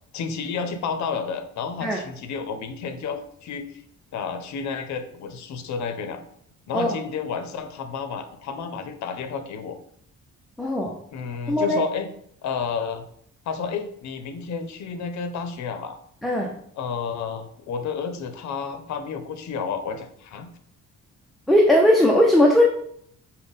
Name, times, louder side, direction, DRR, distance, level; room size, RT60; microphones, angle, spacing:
voice 1, 0.1-3.8 4.1-6.2 6.7-9.8 11.1-12.1 12.4-13.0 13.5-16.0 16.8-20.5, left 6 dB, 65° left, 8 dB, 0.6 m, -31 dB
voice 2, 10.6-10.9 11.5-11.8 16.2-16.5 21.5-22.6, left 1 dB, ahead, -1 dB, 0.3 m, -18 dB
5.3 x 2.1 x 3.9 m, 0.66 s
cardioid pair, 155°, 31 cm